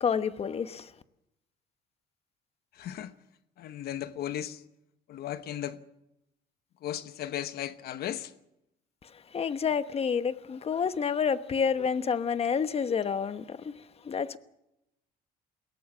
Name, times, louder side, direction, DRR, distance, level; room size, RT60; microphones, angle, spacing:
voice 1, 0.0-0.9 9.3-14.4, left 6 dB, 35° left, 1.1 m, -29 dB
voice 2, 2.7-3.1 3.6-4.6 5.1-5.8 6.8-8.3 11.8-11.9, left 11 dB, 70° left, 1.1 m, -36 dB
22.0 x 17.5 x 7.3 m
cardioid pair, 110°, 17 cm